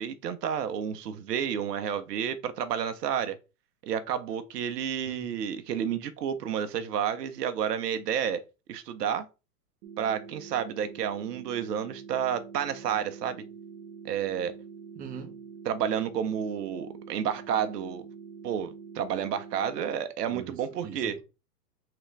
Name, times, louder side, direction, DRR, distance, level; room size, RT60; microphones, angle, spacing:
voice 1, 0.0-3.4 3.8-8.4 8.7-9.3 10.0-13.4 14.0-14.5 15.7-18.1 18.4-21.1, right 8 dB, 80° right, 0.8 m, -30 dB
sound 1, 9.8-19.8, right 6 dB, 55° right, 1.0 m, -45 dB
voice 2, 14.9-15.4 20.3-21.2, right 6 dB, 20° right, 0.7 m, -42 dB
3.8 x 3.3 x 3.1 m
hypercardioid pair, 115°, 48 cm